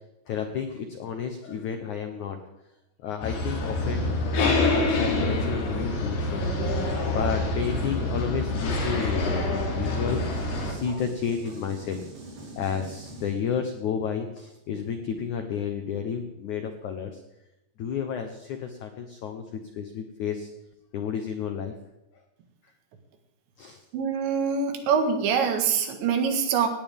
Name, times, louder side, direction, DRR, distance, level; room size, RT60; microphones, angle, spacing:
voice 1, 0.3-2.4 3.0-4.0 4.3-6.5 7.0-10.2 10.6-12.0 12.5-17.2 17.8-20.5 20.9-21.7 23.6-23.8, left 7 dB, 85° left, 6 dB, 1.7 m, -31 dB
sound 1, 3.2-10.7, left 2 dB, 65° left, 4.9 m, -26 dB
sound 2, 10.1-13.8, right 3 dB, 55° right, 5.1 m, -44 dB
voice 2, 23.9-26.7, right 6 dB, 80° right, 5 dB, 4.0 m, -24 dB
18.5 x 18.0 x 3.6 m, 0.87 s
omnidirectional pair, 5.1 m